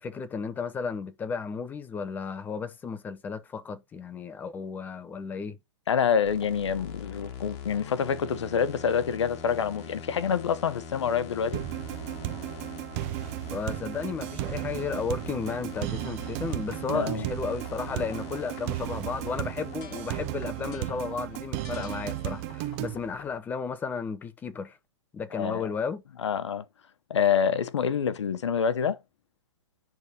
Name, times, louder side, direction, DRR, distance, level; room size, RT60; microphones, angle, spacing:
voice 1, 0.0-5.6 13.5-24.8 25.1-26.0, left 5 dB, 10° left, 0.6 m, -34 dB
voice 2, 5.9-11.6 16.9-17.3 25.3-25.7 26.2-26.6 27.1-29.0, left 7 dB, 90° left, 0.9 m, -27 dB
sound 1, 6.2-23.4, left 5 dB, 35° left, 1.6 m, -44 dB
sound 2, 11.5-23.0, right 15 dB, 30° right, 0.4 m, -34 dB
10.5 x 3.5 x 2.8 m
hypercardioid pair, 150°, 14 cm